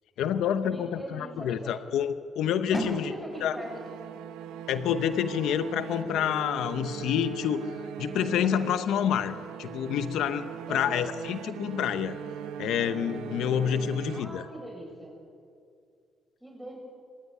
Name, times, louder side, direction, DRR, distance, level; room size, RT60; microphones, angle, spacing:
voice 1, 0.2-3.1 3.4-3.6 4.7-7.7 8.0-12.2 12.6-14.4, left 9 dB, 75° left, 11 dB, 0.9 m, -28 dB
voice 2, 0.7-1.7 2.7-3.8 10.7-11.1 14.1-15.1 16.4-16.8, right 1 dB, 5° right, 0 dB, 8.0 m, -40 dB
sound 1, 2.7-8.5, left 1 dB, 30° left, 6.3 m, -40 dB
sound 2, 3.3-14.8, right 8 dB, 85° right, 1.3 m, -40 dB
26.5 x 15.5 x 9.6 m, 2.3 s
cardioid pair, 100°, 0 cm